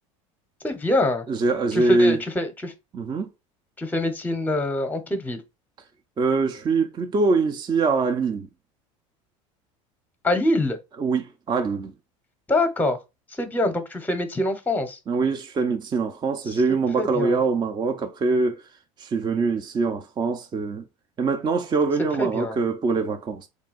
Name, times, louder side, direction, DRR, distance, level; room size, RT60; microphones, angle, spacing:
voice 1, 0.6-1.3 1.7-2.7 3.8-5.4 10.2-10.8 12.5-13.0 13.3-15.0 16.5-16.6 17.0-17.4 22.2-22.6, left 1 dB, 10° left, 0.8 m, -25 dB
voice 2, 1.3-2.2 2.9-3.3 6.2-8.5 11.0-11.9 15.1-18.6 19.0-20.8 21.2-23.5, right 4 dB, 25° right, 0.5 m, -23 dB
3.7 x 2.2 x 4.0 m
hypercardioid pair, 90°, 17 cm